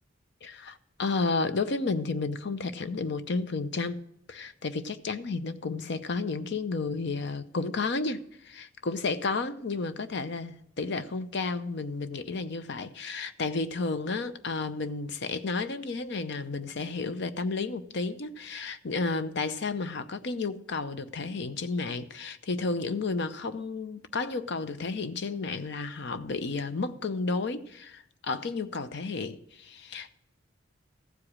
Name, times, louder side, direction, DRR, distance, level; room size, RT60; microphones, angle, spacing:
voice 1, 0.4-4.0 4.3-30.2, left 3 dB, 60° left, 0.6 m, -32 dB
14.5 x 4.9 x 8.6 m
head